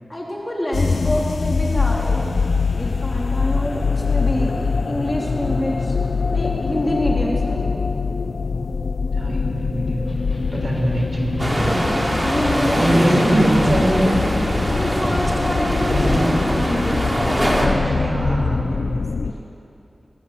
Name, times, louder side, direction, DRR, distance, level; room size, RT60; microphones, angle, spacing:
voice 1, 0.1-6.0 6.3-7.8 12.2-14.0 14.7-19.4, equal, 20° left, -3 dB, 3.8 m, -27 dB
sound 1, 0.7-19.3, left 4 dB, 80° left, 0.5 m, -23 dB
voice 2, 9.1-10.1 10.5-11.9 12.8-14.2 15.9-16.3 17.5-18.6, right 1 dB, 40° right, -1 dB, 5.6 m, -22 dB
Electric guitar, 10.1-17.4, left 1 dB, 50° left, 7.5 m, -39 dB
sound 2, 11.4-17.7, equal, 15° right, 3.4 m, -22 dB
22.0 x 17.5 x 7.8 m, 2.7 s
wide cardioid pair, 80°, 0 cm